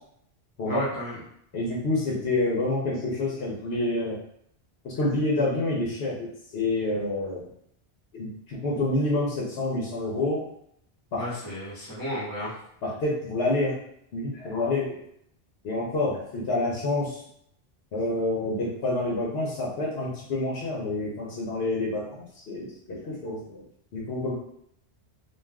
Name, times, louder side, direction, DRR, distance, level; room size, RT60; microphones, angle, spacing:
voice 1, 0.6-1.2 11.2-12.5, equal, 20° right, -11 dB, 0.9 m, -32 dB
voice 2, 1.5-4.2 4.8-6.3 6.5-7.4 8.1-10.4 11.1-11.2 12.8-13.7 14.1-14.9 15.6-17.2 17.9-23.6 23.9-24.3, left 2 dB, 70° left, -4 dB, 0.9 m, -28 dB
2.4 x 2.3 x 3.4 m, 0.71 s
omnidirectional pair, 1.1 m